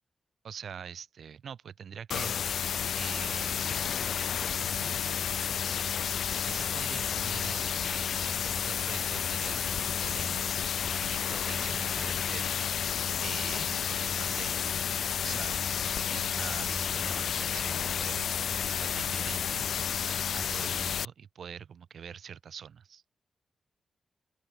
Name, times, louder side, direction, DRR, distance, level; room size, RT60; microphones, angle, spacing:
voice 1, 0.4-2.6 2.9-4.0 4.6-5.3 6.4-10.4 10.8-12.7 13.2-15.0 15.2-19.7 20.3-23.0, right 7 dB, 75° right, 3.0 m, -44 dB
sound 1, 2.1-21.1, left 8 dB, 80° left, 0.6 m, -31 dB
open air
cardioid pair, 75°, 0 cm